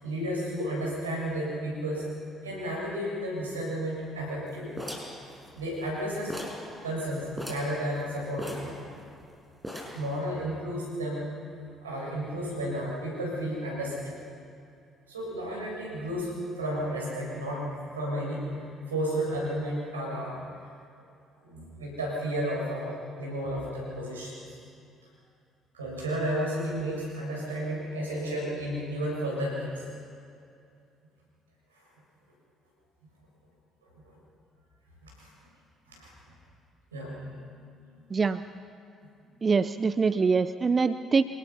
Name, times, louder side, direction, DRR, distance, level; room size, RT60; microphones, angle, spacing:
voice 1, 0.0-2.0 2.4-4.8 5.5-6.4 6.8-8.8 9.9-11.3 11.8-14.2 15.1-17.7 17.9-20.4 21.4-24.6 25.7-29.8 34.0-34.1 35.0-35.3 35.9-36.1 36.9-37.7, equal, 85° right, -3 dB, 7.0 m, -32 dB
sound 1, 4.8-6.0 6.3-6.7 7.0-7.1 7.3-7.7 8.4-9.2 9.6-10.1, left 1 dB, 10° right, 6.1 m, -38 dB
voice 2, 38.1-38.4 39.4-41.2, right 5 dB, 35° right, 14 dB, 0.6 m, -24 dB
26.5 x 19.0 x 5.8 m, 2.5 s
figure-of-eight pair, 50°, 0 cm